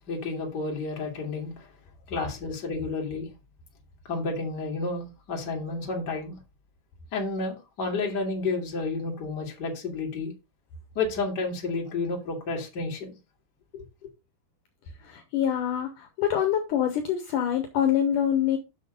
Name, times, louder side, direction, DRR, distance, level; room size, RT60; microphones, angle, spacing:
voice 1, 0.1-1.7 2.1-3.3 4.1-6.4 7.1-10.3 10.9-13.2 13.7-13.8, left 3 dB, 35° left, 1.8 m, -31 dB
voice 2, 15.0-18.6, left 9 dB, 85° left, 1.8 m, -25 dB
8.3 x 6.3 x 3.8 m
omnidirectional pair, 5.2 m